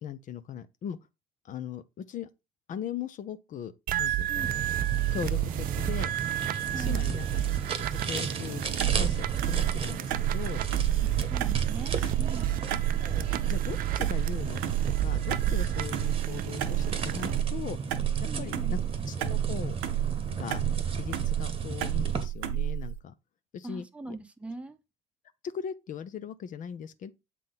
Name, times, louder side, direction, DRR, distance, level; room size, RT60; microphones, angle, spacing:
voice 1, 0.0-1.0 1.4-2.3 2.7-3.7 4.0-4.6 5.1-6.1 6.7-7.4 7.8-8.6 8.9-10.6 12.0-12.1 13.0-14.6 15.0-17.8 18.2-18.8 19.1-19.8 20.3-20.6 20.9-23.1 23.5-24.2 25.4-27.1, left 8 dB, 45° left, 0.7 m, -39 dB
sound 1, 3.9-17.4, right 13 dB, 50° right, 0.5 m, -31 dB
sound 2, 4.4-22.2, right 5 dB, 30° right, 1.1 m, -35 dB
voice 2, 6.7-7.1 11.0-12.5 18.2-18.8 23.6-24.8, right 2 dB, 5° right, 0.9 m, -41 dB
sound 3, 8.8-23.0, right 12 dB, 70° right, 0.8 m, -31 dB
7.5 x 3.8 x 3.9 m
hypercardioid pair, 65°, 19 cm